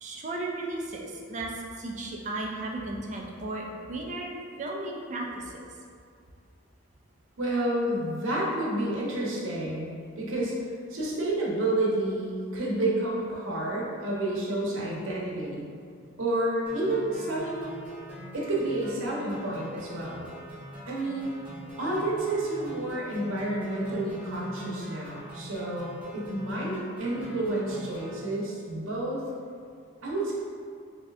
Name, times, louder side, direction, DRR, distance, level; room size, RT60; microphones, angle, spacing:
voice 1, 0.0-4.3 4.6-5.6, right 2 dB, 35° right, 0 dB, 0.4 m, -35 dB
voice 2, 7.4-10.5 10.9-15.7 16.2-17.7 18.3-20.3 20.9-21.3 21.8-29.2 30.0-30.3, right 1 dB, 75° right, -5 dB, 0.8 m, -30 dB
sound 1, 16.6-28.2, right 1 dB, 5° right, 1.1 m, -44 dB
3.2 x 2.6 x 3.4 m, 2.2 s
head